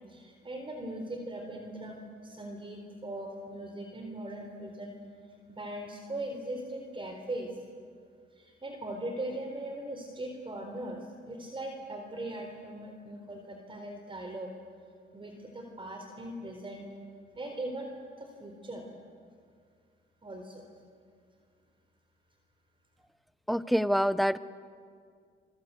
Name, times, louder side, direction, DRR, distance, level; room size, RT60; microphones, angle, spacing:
voice 1, 0.1-4.9 5.5-7.6 8.3-14.5 15.1-16.9 17.3-17.9 18.2-18.9 20.2-20.7, right 1 dB, 25° right, 3 dB, 4.0 m, -40 dB
voice 2, 23.5-24.4, equal, ahead, 16 dB, 0.8 m, -26 dB
27.0 x 24.5 x 8.1 m, 2.1 s
cardioid pair, 90°, 20 cm